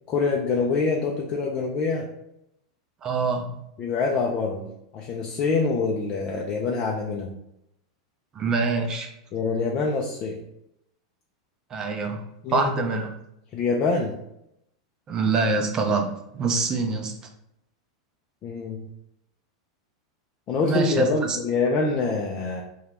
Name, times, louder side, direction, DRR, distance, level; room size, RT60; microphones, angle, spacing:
voice 1, 0.1-2.1 3.8-4.7 4.9-7.3 9.3-10.4 12.4-12.7 13.5-14.2 18.4-18.9 20.5-22.6, left 4 dB, 40° left, -1 dB, 0.4 m, -25 dB
voice 2, 3.0-3.6 8.3-9.1 11.7-12.2 12.5-13.1 15.1-17.1 20.6-21.4, right 4 dB, 30° right, 4 dB, 0.6 m, -25 dB
2.8 x 2.3 x 3.3 m, 0.80 s
hypercardioid pair, 95°, 2 cm